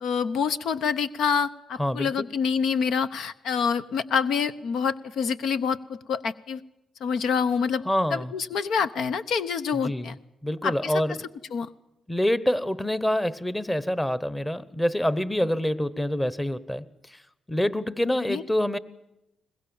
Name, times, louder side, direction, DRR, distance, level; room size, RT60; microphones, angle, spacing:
voice 1, 0.0-6.6 7.0-7.8 8.1-10.1 10.6-10.9 11.5-11.7 18.3-18.4, left 6 dB, 75° left, 12 dB, 0.9 m, -26 dB
voice 2, 1.8-2.3 7.8-8.3 9.8-10.2 10.4-11.3 12.1-17.2 17.5-18.8, left 1 dB, 10° left, 17 dB, 1.1 m, -26 dB
22.5 x 20.5 x 7.1 m, 0.89 s
cardioid pair, 80°, 0 cm